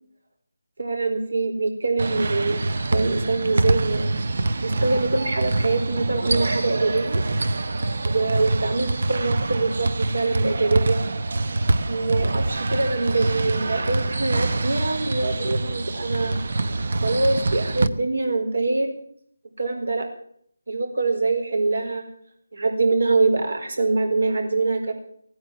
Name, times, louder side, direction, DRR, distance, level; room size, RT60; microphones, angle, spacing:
voice 1, 0.8-2.6 2.9-4.1 4.6-7.2 8.0-11.0 11.8-16.4 17.0-18.9 19.6-20.1 20.7-22.0 22.5-24.9, right 3 dB, 70° right, 4 dB, 4.6 m, -24 dB
sound 1, 2.0-17.9, right 2 dB, 50° right, 0.8 m, -25 dB
16.5 x 9.6 x 7.8 m, 0.64 s
figure-of-eight pair, 170°, 0 cm